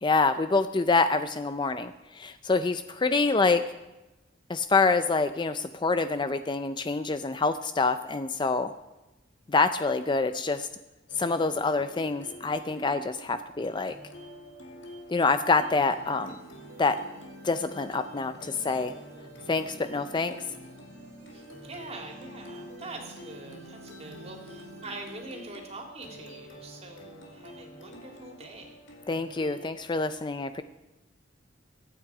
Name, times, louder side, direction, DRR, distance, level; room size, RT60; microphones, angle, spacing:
voice 1, 0.0-3.6 4.5-8.7 9.5-10.7 11.2-14.0 15.1-16.4 16.8-17.0 17.4-18.9 19.5-20.4 29.1-30.6, left 3 dB, 25° left, 11 dB, 0.4 m, -26 dB
voice 2, 3.1-3.4 21.3-28.8, right 2 dB, 35° right, 3 dB, 2.7 m, -44 dB
sound 1, 11.1-29.7, equal, 75° left, 2.5 m, -48 dB
sound 2, 15.6-25.2, right 1 dB, 80° right, 2.5 m, -50 dB
23.0 x 9.0 x 4.8 m, 1.0 s
head